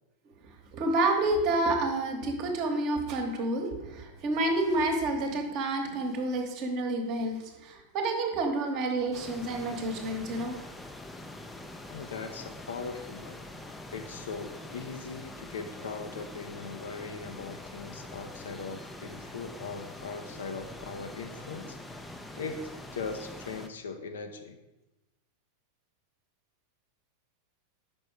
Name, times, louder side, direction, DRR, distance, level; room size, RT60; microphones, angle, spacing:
voice 1, 0.7-10.6, right 2 dB, 40° right, 3 dB, 1.1 m, -29 dB
sound 1, 9.1-23.7, left 1 dB, 10° left, 0.5 m, -44 dB
voice 2, 11.9-13.4 13.9-22.0 22.4-24.6, left 4 dB, 65° left, 7 dB, 0.6 m, -40 dB
5.3 x 5.3 x 4.7 m, 1.0 s
figure-of-eight pair, 90°, 0 cm